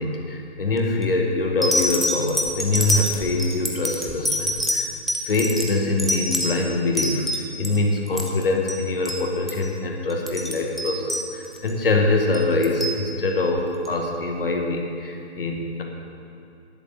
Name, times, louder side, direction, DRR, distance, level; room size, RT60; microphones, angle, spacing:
voice 1, 0.0-4.9 5.3-15.8, left 2 dB, 55° left, 2 dB, 1.6 m, -24 dB
sound 1, 0.8-1.0 1.6-7.8 8.1-8.4 8.7-8.8 9.0-9.2 9.5-9.7 10.1-11.7 12.3-13.0 13.8-13.9, equal, ahead, 0.3 m, -26 dB
11.5 x 8.2 x 7.1 m, 2.6 s
figure-of-eight pair, 150°, 33 cm